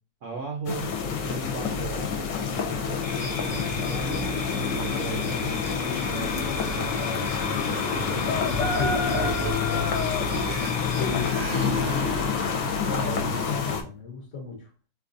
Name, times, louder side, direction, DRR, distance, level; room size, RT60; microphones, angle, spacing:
voice 1, 0.2-4.3 4.7-8.4 9.0-10.7, right 5 dB, 70° right, 0 dB, 0.7 m, -38 dB
sound 1, 0.7-13.8, left 5 dB, 80° left, 1.2 m, -27 dB
sound 2, 3.0-11.3, left 2 dB, 5° left, 0.7 m, -37 dB
sound 3, 8.7-8.9 9.2-11.0 11.2-12.4, right 4 dB, 85° right, 1.4 m, -36 dB
voice 2, 11.0-12.6 12.9-14.7, left 4 dB, 55° left, -1 dB, 0.9 m, -35 dB
4.5 x 2.3 x 2.5 m, 0.34 s
omnidirectional pair, 2.0 m